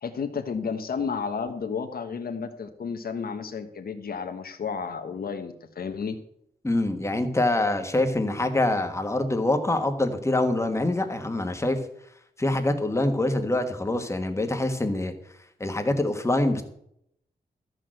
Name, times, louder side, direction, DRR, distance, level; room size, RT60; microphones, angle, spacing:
voice 1, 0.0-6.2, left 5 dB, 70° left, 6 dB, 1.2 m, -32 dB
voice 2, 6.6-11.8 12.4-15.1 15.6-16.6, left 2 dB, 15° left, 6 dB, 1.5 m, -25 dB
13.5 x 6.4 x 7.7 m, 0.72 s
wide cardioid pair, 155°, 16 cm